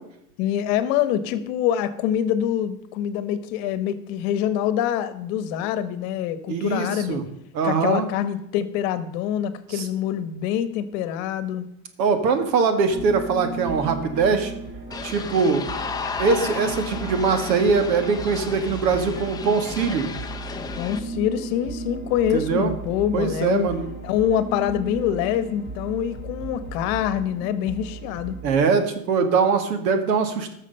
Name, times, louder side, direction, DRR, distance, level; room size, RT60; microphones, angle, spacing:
voice 1, 0.4-7.2 7.6-11.6 20.8-23.7 24.0-28.4, left 10 dB, 50° left, 13 dB, 1.1 m, -25 dB
voice 2, 6.5-7.2 7.5-8.1 9.8-9.9 12.0-14.5 15.0-15.6 16.2-20.1 22.3-22.7 23.1-23.8 28.4-30.5, right 5 dB, 80° right, 8 dB, 2.0 m, -22 dB
sound 1, 12.9-28.7, right 3 dB, 25° right, 3.4 m, -36 dB
sound 2, 14.9-21.0, left 5 dB, 10° left, 0.5 m, -33 dB
13.5 x 6.4 x 5.4 m, 0.77 s
supercardioid pair, 130°, 50 cm